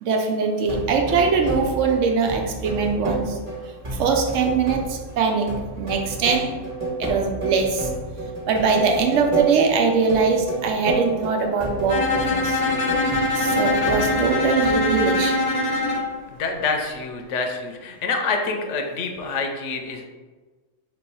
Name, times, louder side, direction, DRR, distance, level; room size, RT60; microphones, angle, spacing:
voice 1, 0.0-3.4 4.0-5.5 5.8-6.5 7.0-7.9 8.5-12.6 13.4-15.4, right 5 dB, 80° right, 4 dB, 0.9 m, -22 dB
sound 1, 0.7-15.1, right 2 dB, 25° right, 1.2 m, -31 dB
Bowed string instrument, 11.9-16.1, left 2 dB, 50° left, 0.4 m, -22 dB
voice 2, 16.3-20.0, left 4 dB, 75° left, 4 dB, 0.9 m, -27 dB
3.0 x 3.0 x 4.6 m, 1.3 s
omnidirectional pair, 1.3 m